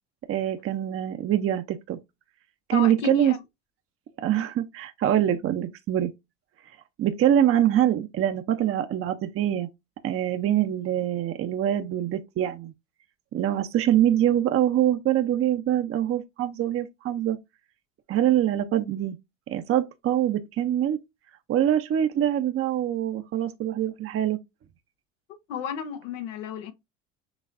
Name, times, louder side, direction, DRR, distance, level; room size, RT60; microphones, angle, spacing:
voice 1, 0.3-2.0 2.7-3.3 4.2-6.1 7.0-9.7 10.0-12.7 13.3-17.4 18.1-19.2 19.5-21.0 21.5-24.4, right 11 dB, 40° right, 0.6 m, -24 dB
voice 2, 2.7-3.4 25.5-26.7, left 6 dB, 85° left, 1.0 m, -32 dB
6.1 x 3.2 x 2.5 m
hypercardioid pair, 85°, 37 cm